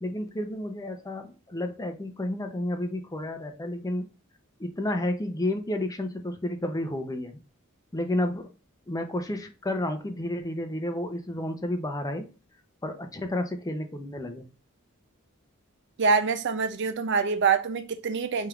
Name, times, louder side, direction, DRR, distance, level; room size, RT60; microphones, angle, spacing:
voice 1, 0.0-4.0 4.6-7.4 7.9-8.5 8.9-12.3 12.8-14.5, left 1 dB, 15° left, 0.6 m, -31 dB
voice 2, 16.0-18.5, right 5 dB, 55° right, 0.4 m, -25 dB
4.4 x 3.4 x 2.4 m
head